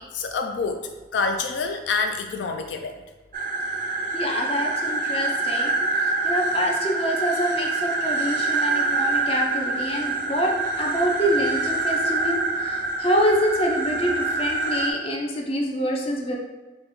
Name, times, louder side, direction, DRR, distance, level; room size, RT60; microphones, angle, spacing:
voice 1, 0.0-3.0, left 4 dB, 80° left, 5 dB, 0.3 m, -27 dB
sound 1, 3.3-14.9, right 3 dB, 45° right, 0.3 m, -26 dB
voice 2, 4.1-16.4, equal, 35° left, -1 dB, 0.5 m, -26 dB
5.0 x 2.2 x 3.0 m, 1.2 s
head